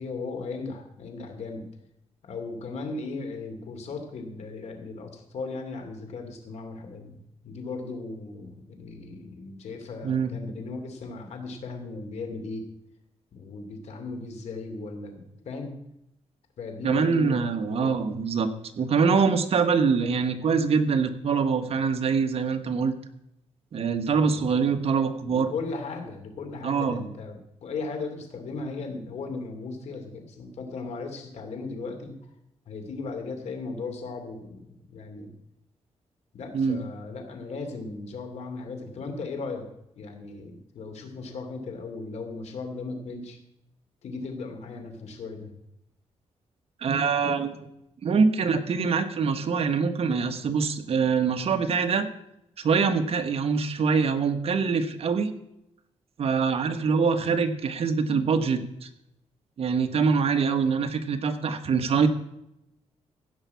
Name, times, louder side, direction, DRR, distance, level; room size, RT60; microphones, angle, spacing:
voice 1, 0.0-1.7 2.2-12.7 13.3-15.8 16.6-18.0 24.1-24.7 25.3-32.2 32.7-34.6 34.9-35.4 36.3-39.7 39.9-43.4 44.0-45.5, left 3 dB, 70° left, 4 dB, 2.8 m, -37 dB
voice 2, 10.0-10.3 16.8-18.5 18.8-22.9 23.7-25.5 26.6-27.0 36.5-36.8 46.8-47.6 48.0-52.1 52.6-55.3 56.2-58.9 59.6-62.1, right 5 dB, 60° right, 7 dB, 1.4 m, -24 dB
15.5 x 5.7 x 8.4 m, 0.81 s
cardioid pair, 110°, 12 cm